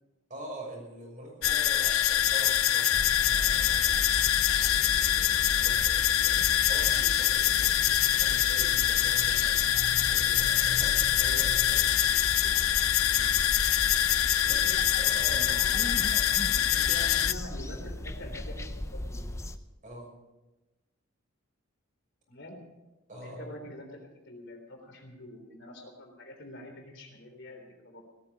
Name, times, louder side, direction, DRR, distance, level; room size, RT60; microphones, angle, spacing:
voice 1, 0.3-4.3 4.6-12.3 13.1-13.4 14.4-16.3 19.8-20.1 23.1-23.5, right 1 dB, 40° right, -1 dB, 6.4 m, -44 dB
sound 1, 1.4-17.3, left 12 dB, 90° left, 0.6 m, -25 dB
sound 2, 2.9-19.6, left 1 dB, 15° left, 0.6 m, -37 dB
voice 2, 11.7-12.5 15.3-16.0 16.4-19.3 22.3-22.6 23.2-28.0, left 1 dB, 60° left, 3 dB, 3.6 m, -46 dB
18.0 x 13.5 x 5.3 m, 1.1 s
head